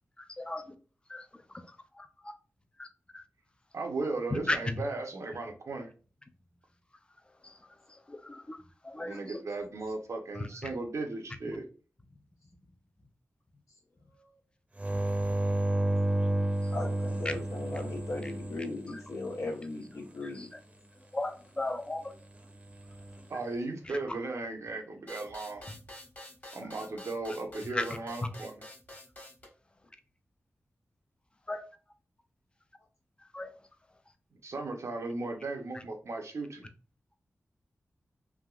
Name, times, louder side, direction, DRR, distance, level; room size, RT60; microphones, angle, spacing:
voice 1, 0.2-0.7 1.1-1.4 1.9-2.3 2.8-2.9 3.1-3.2 4.3-4.7 7.4-7.6 7.9-8.6 8.8-9.4 10.4-10.7 11.5-11.6 16.6-16.7 17.3-17.4 18.2-18.3 20.4-20.5 21.1-22.1 24.1-24.2 25.7-25.8 26.6-26.7 27.7-27.8 31.5-31.6 33.3-33.5 35.7-35.8, left 2 dB, 20° left, 8 dB, 0.4 m, -36 dB
voice 2, 3.7-5.9 9.0-11.7 23.3-25.7 26.5-28.6 34.4-36.7, right 3 dB, 75° right, 3 dB, 0.7 m, -36 dB
sound 1, 14.8-19.4 22.7-23.2, right 1 dB, 25° right, 0.7 m, -31 dB
voice 3, 16.7-20.5, left 2 dB, 80° left, -2 dB, 1.0 m, -38 dB
sound 2, 25.1-29.5, left 1 dB, 40° left, 1.4 m, -48 dB
3.4 x 2.6 x 2.4 m, 0.37 s
wide cardioid pair, 80°, 5 cm